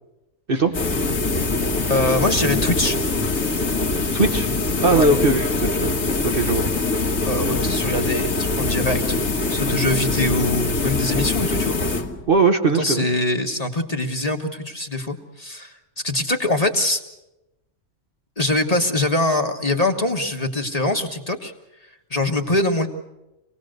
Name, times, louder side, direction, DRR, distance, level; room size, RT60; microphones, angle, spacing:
Guitar, 0.5-2.6, left 1 dB, 70° right, 5.2 m, -41 dB
sound 1, 0.7-12.4, left 3 dB, 65° left, 2.0 m, -23 dB
voice 1, 1.9-3.0 4.9-5.1 7.2-11.8 12.7-15.8 16.0-17.0 18.4-21.5 22.1-22.9, left 2 dB, 25° left, 4 dB, 1.4 m, -23 dB
voice 2, 4.1-4.5 4.8-6.0 6.2-6.6 12.3-13.1, right 3 dB, 45° right, 4 dB, 1.1 m, -19 dB
26.0 x 18.5 x 6.5 m, 0.94 s
omnidirectional pair, 1.5 m